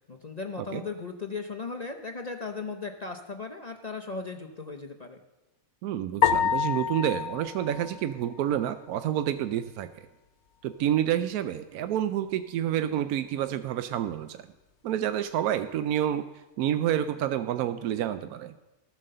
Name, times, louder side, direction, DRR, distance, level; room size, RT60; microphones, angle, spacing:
voice 1, 0.1-5.2, left 4 dB, 40° left, 4 dB, 0.6 m, -37 dB
voice 2, 5.8-9.9 10.6-14.4 14.8-16.2 16.6-18.5, right 11 dB, 85° right, 10 dB, 1.1 m, -28 dB
sound 1, 6.2-8.7, left 8 dB, 75° left, 1.3 m, -28 dB
14.5 x 7.4 x 6.6 m, 1.1 s
omnidirectional pair, 1.5 m